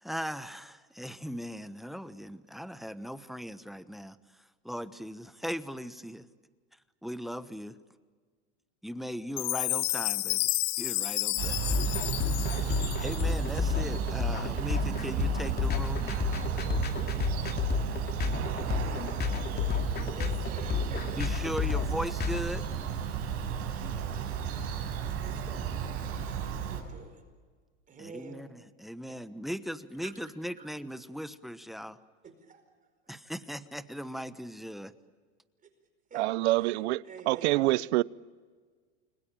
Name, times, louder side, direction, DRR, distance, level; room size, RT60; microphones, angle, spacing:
voice 1, 0.0-4.2 4.6-6.2 7.0-7.8 8.8-10.4 10.8-11.8 12.5-16.1 21.1-22.6 28.0-32.0 33.1-34.9, equal, ahead, 1.1 m, -38 dB
Chime, 9.4-13.6, left 19 dB, 50° left, 1.1 m, -31 dB
Bird vocalization bird call bird song, 11.4-26.8, right 8 dB, 45° right, 6.9 m, -33 dB
sound 1, 11.7-22.4, left 8 dB, 30° left, 2.6 m, -31 dB
voice 2, 20.0-21.5 23.7-24.3 25.2-26.1 26.4-27.2 27.9-28.5 29.1-29.2 30.0-30.1 30.6-30.7 32.2-32.6 36.1-36.3 36.5-36.8 37.0-37.9, right 5 dB, 25° right, 4.7 m, -48 dB
voice 3, 36.1-38.0, right 19 dB, 70° right, 0.8 m, -26 dB
29.5 x 22.5 x 8.9 m
supercardioid pair, 120°, 33 cm